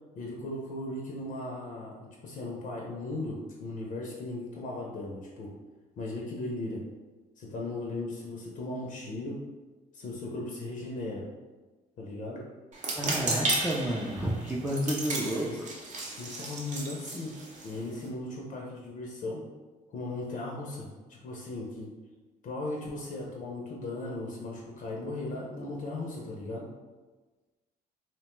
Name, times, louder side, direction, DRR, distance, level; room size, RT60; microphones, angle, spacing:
voice 1, 0.1-5.5 6.0-6.8 7.4-9.4 9.9-11.2 12.0-12.4 15.1-15.6 16.2-17.4 17.6-19.4 19.9-21.9 22.4-26.7, left 2 dB, 50° left, -2 dB, 0.5 m, -37 dB
sound 1, 12.7-18.1, right 2 dB, 45° right, 0.6 m, -34 dB
voice 2, 13.0-15.5, equal, 5° right, -4 dB, 0.3 m, -30 dB
2.8 x 2.1 x 3.0 m, 1.3 s
cardioid pair, 110°, 17 cm